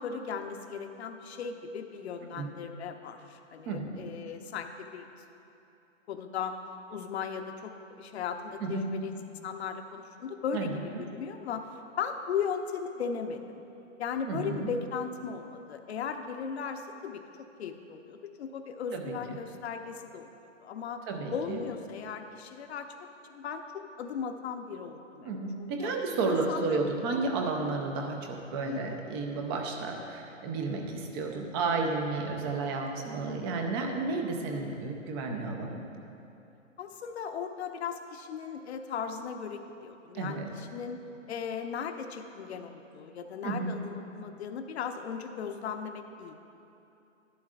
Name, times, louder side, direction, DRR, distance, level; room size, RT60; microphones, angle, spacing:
voice 1, 0.0-5.1 6.1-6.6 6.9-9.2 9.4-10.7 11.0-11.7 12.0-13.6 14.0-17.2 17.6-20.3 20.6-21.0 21.3-25.3 25.6-25.9 26.3-26.8 28.6-29.0 34.8-34.9 36.8-41.0 41.3-46.4, left 6 dB, 55° left, 6 dB, 0.8 m, -37 dB
voice 2, 3.7-4.1 8.6-8.9 10.5-11.0 14.3-14.7 18.9-19.4 21.1-21.6 25.2-35.8 40.1-40.5 43.4-43.7, right 3 dB, 20° right, 3 dB, 0.6 m, -32 dB
12.5 x 11.0 x 2.4 m, 2.9 s
hypercardioid pair, 140°, 39 cm